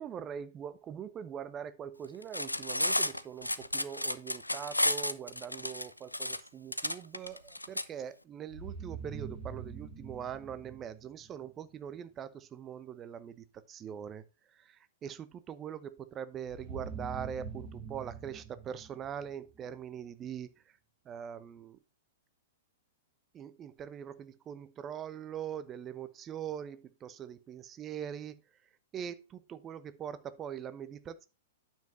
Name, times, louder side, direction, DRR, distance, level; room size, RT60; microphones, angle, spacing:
voice 1, 0.0-14.2 14.5-20.5 21.0-21.8 23.3-28.4 28.9-31.3, right 8 dB, 25° right, 0.8 m, -42 dB
Cutlery silverware, 2.2-7.8, left 1 dB, 85° left, 0.6 m, -32 dB
sound 1, 8.5-11.5 16.4-19.7, right 5 dB, 40° right, 5.4 m, -44 dB
9.3 x 7.3 x 2.7 m
figure-of-eight pair, 105°, 0 cm